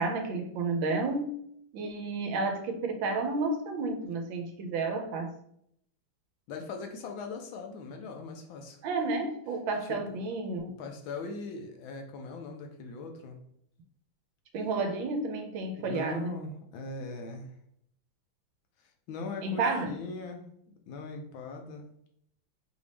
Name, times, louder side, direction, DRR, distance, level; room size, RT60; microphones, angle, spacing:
voice 1, 0.0-1.4 1.7-5.3 8.8-10.7 14.5-16.4 19.4-19.9, right 3 dB, 75° right, 4 dB, 1.3 m, -31 dB
voice 2, 6.5-8.8 9.9-10.2 10.8-13.4 15.7-17.5 19.1-21.9, left 3 dB, 75° left, 4 dB, 1.4 m, -40 dB
4.9 x 2.7 x 3.3 m, 0.69 s
omnidirectional pair, 2.3 m